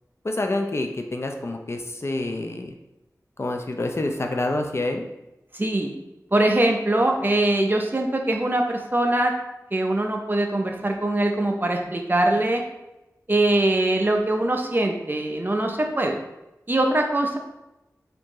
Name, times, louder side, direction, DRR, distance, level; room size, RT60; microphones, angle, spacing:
voice 1, 0.2-2.7 3.4-5.0 7.2-7.3, left 2 dB, 45° left, 3 dB, 0.4 m, -27 dB
voice 2, 5.5-5.9 6.3-9.3 9.7-12.6 13.3-16.2 16.7-17.4, right 1 dB, 30° right, 2 dB, 0.5 m, -22 dB
4.4 x 2.6 x 3.0 m, 0.93 s
wide cardioid pair, 60°, 6 cm